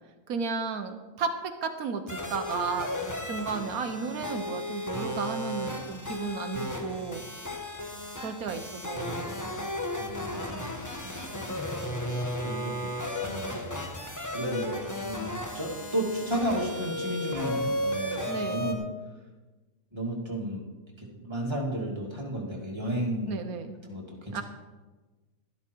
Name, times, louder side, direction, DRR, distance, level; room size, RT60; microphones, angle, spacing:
voice 1, 0.3-1.3 1.6-2.9 3.2-7.2 8.2-9.3 18.2-18.7 23.3-23.8 24.3-24.4, right 5 dB, 85° right, 7 dB, 1.4 m, -33 dB
sound 1, 2.1-18.7, left 1 dB, 15° left, 1.2 m, -34 dB
voice 2, 10.0-10.7 11.0-11.2 12.4-12.9 13.2-13.8 14.3-14.7 15.0-18.8 19.9-20.7 21.0-23.4 23.8-24.4, right 1 dB, 20° right, -2 dB, 2.6 m, -33 dB
13.0 x 12.0 x 4.6 m, 1.2 s
omnidirectional pair, 1.5 m